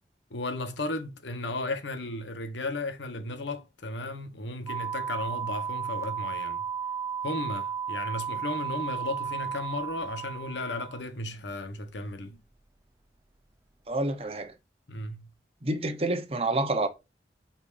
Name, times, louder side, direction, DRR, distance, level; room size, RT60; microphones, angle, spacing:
voice 1, 0.3-6.6 7.2-12.4 14.9-15.3, left 2 dB, 85° left, 1.2 m, -35 dB
sound 1, 4.7-11.0, right 7 dB, 15° right, 0.5 m, -34 dB
voice 2, 13.9-14.5 15.6-16.9, right 2 dB, 35° right, 1.0 m, -28 dB
8.6 x 4.4 x 2.7 m
head